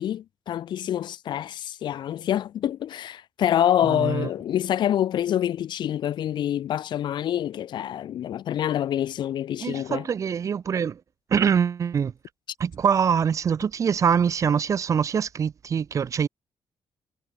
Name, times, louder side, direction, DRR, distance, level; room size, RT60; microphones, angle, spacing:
voice 1, 0.0-10.0, left 11 dB, 70° left, 2.7 m, -26 dB
voice 2, 3.8-4.3 9.6-11.0 11.3-12.1 12.6-16.3, right 7 dB, 40° right, 1.5 m, -24 dB
cardioid pair, 160°, 8 cm